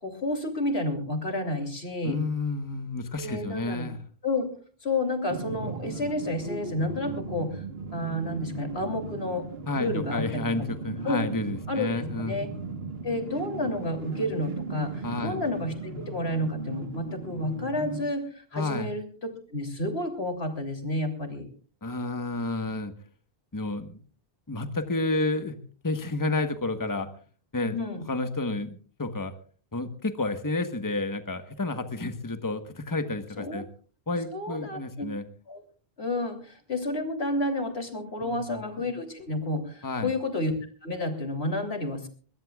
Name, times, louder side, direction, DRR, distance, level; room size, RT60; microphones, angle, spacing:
voice 1, 0.0-2.2 3.2-3.9 4.2-4.5 4.8-7.6 7.9-9.4 9.7-10.4 11.0-11.2 11.7-12.5 13.0-19.1 19.5-21.5 27.7-28.0 33.4-33.6 34.3-35.1 35.5-35.6 36.0-40.5 40.8-42.1, left 1 dB, 85° left, 5 dB, 3.4 m, -30 dB
voice 2, 2.0-4.0 9.7-12.4 15.0-15.4 18.5-18.9 21.8-22.9 23.5-24.0 24.5-25.6 25.8-27.1 27.5-27.8 28.1-28.7 29.0-29.3 29.7-33.6 34.1-35.2 38.2-38.6 39.8-40.1, left 2 dB, 20° left, 9 dB, 1.2 m, -30 dB
sound 1, 5.3-18.0, right 3 dB, 75° right, 1.7 m, -37 dB
22.0 x 21.0 x 2.4 m, 0.41 s
omnidirectional pair, 1.0 m